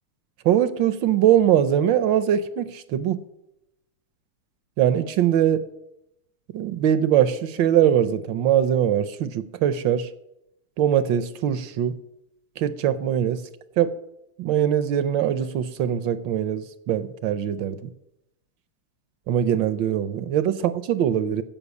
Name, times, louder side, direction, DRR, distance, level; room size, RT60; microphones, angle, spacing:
voice 1, 0.4-3.2 4.8-5.7 6.5-10.1 10.8-12.0 12.6-13.4 13.8-13.9 14.4-17.8 19.3-21.4, right 10 dB, 70° right, 1.2 m, -22 dB
15.0 x 5.8 x 8.3 m
omnidirectional pair, 2.4 m